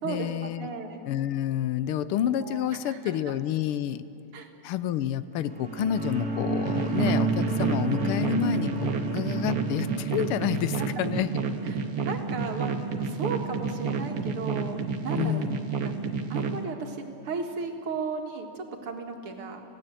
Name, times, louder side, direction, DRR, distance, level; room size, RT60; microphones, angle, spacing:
voice 1, 0.0-0.7 1.1-4.0 4.6-11.4 15.2-15.6, left 11 dB, 85° left, 14 dB, 1.6 m, -29 dB
voice 2, 0.6-1.0 2.4-3.4 4.3-4.5 10.8-10.9 11.6-15.4 15.8-15.9 16.3-19.6, right 4 dB, 85° right, 3 dB, 2.7 m, -35 dB
sound 1, 5.4-12.1, right 3 dB, 45° right, 2.4 m, -31 dB
sound 2, 6.7-16.6, right 5 dB, 65° right, 1.8 m, -30 dB
26.5 x 16.5 x 7.7 m, 2.7 s
omnidirectional pair, 2.4 m